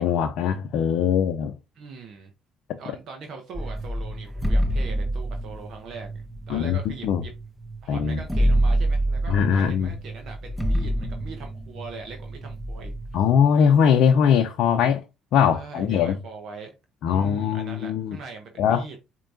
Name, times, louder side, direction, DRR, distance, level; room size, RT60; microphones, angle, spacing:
voice 1, 0.0-1.6 6.5-6.8 7.0-7.2 7.9-8.2 9.3-9.9 13.1-15.0 15.3-16.2 17.0-18.2 18.6-18.8, left 7 dB, 70° left, 0.6 m, -21 dB
voice 2, 1.7-2.3 2.8-7.3 7.8-12.9 15.5-16.7 17.0-19.0, right 4 dB, 65° right, 0.9 m, -41 dB
sound 1, 3.5-7.4 7.7-7.8 8.0-13.2, right 1 dB, 5° right, 0.8 m, -26 dB
4.5 x 2.9 x 2.6 m
supercardioid pair, 70°, 0 cm